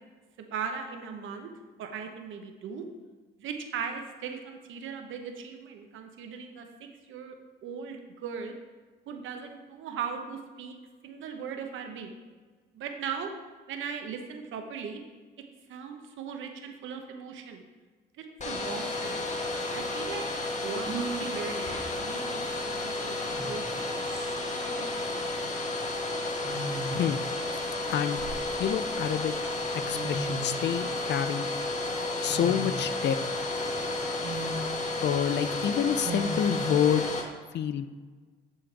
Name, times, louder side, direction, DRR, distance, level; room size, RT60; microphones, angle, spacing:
voice 1, 0.4-1.5 1.8-2.8 3.4-7.3 7.6-8.5 9.1-10.7 11.0-12.1 12.7-13.3 13.7-15.0 15.7-17.6 18.2-19.3 19.7-20.3 20.6-25.2, right 6 dB, 80° right, 4 dB, 1.0 m, -39 dB
Domestic sounds home sounds, 18.4-37.2, left 2 dB, 35° left, 1.3 m, -32 dB
sound 1, 20.8-21.3 22.9-23.0 23.3-23.8 25.1-25.3 26.4-27.2 27.8-28.9 29.5-29.6 29.8-30.7 32.3-32.9 33.4-33.5 34.2-34.7 36.0-36.7, right 2 dB, 45° right, 1.5 m, -37 dB
voice 2, 27.9-28.2 28.6-29.3 29.7-31.5 32.2-33.2 35.0-37.1 37.5-37.9, left 9 dB, 60° left, 11 dB, 0.5 m, -28 dB
10.0 x 3.9 x 4.6 m, 1.4 s
cardioid pair, 90°, 20 cm